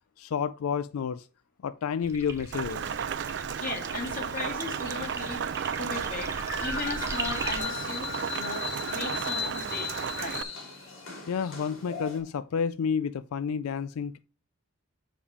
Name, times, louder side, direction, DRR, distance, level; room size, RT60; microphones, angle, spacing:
voice 1, 0.2-1.3 1.6-2.9 11.3-14.2, left 6 dB, 85° left, 0.4 m, -30 dB
sound 1, 2.0-7.6, right 3 dB, 15° right, 1.1 m, -39 dB
Rain, 2.5-10.4, right 7 dB, 55° right, 0.4 m, -34 dB
voice 2, 3.6-5.5 5.8-8.1 8.3-10.4, left 3 dB, 40° left, 2.4 m, -37 dB
sound 2, 3.7-12.2, left 7 dB, 65° left, 2.8 m, -39 dB
7.0 x 5.0 x 4.9 m
head